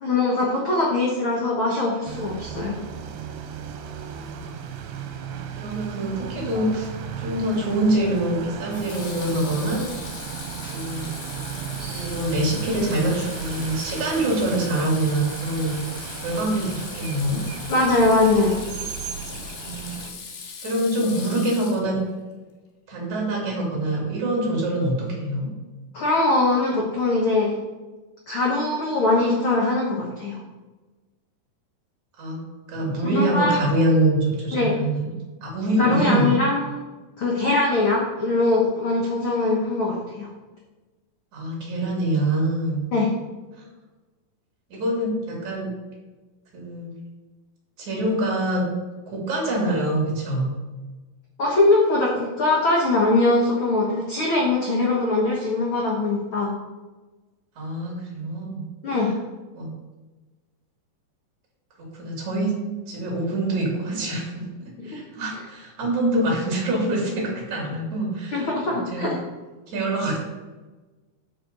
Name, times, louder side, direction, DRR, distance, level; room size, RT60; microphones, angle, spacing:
voice 1, 0.0-2.8 10.6-10.7 17.7-18.6 25.9-27.6 28.3-30.4 33.0-33.6 34.5-34.8 35.8-36.8 37.2-40.3 42.9-43.1 51.4-56.5 58.8-59.1 64.9-65.0 68.3-69.2, left 2 dB, 60° left, -3 dB, 1.3 m, -22 dB
sound 1, 2.1-20.1, right 7 dB, 85° right, 2.7 m, -35 dB
voice 2, 5.6-6.9 7.2-9.8 10.7-11.1 11.9-15.9 16.2-17.4 19.6-20.0 20.6-22.0 22.9-25.5 32.2-32.4 32.7-35.1 35.4-36.3 41.3-42.8 44.7-45.7 46.5-46.9 47.8-48.7 49.1-50.5 57.6-58.6 59.0-59.1 59.5-59.7 61.9-62.6 62.9-64.4 64.8-69.1 69.7-70.2, right 1 dB, 55° right, -2 dB, 3.7 m, -25 dB
Water tap faucet / Sink (filling or washing), 7.1-7.4 8.7-22.1, left 5 dB, 85° left, 3.2 m, -39 dB
9.0 x 4.8 x 6.6 m, 1.2 s
omnidirectional pair, 4.1 m